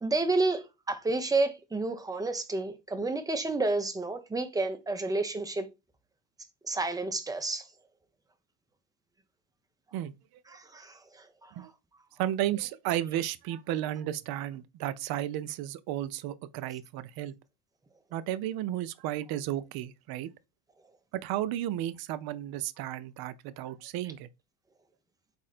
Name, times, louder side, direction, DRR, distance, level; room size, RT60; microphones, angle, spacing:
voice 1, 0.0-5.7 6.6-7.7 10.5-11.7, right 3 dB, 10° right, 0.6 m, -30 dB
voice 2, 12.2-17.3 18.1-20.3 21.2-24.3, right 12 dB, 55° right, 0.5 m, -33 dB
4.1 x 2.6 x 4.1 m
supercardioid pair, 105°, 46 cm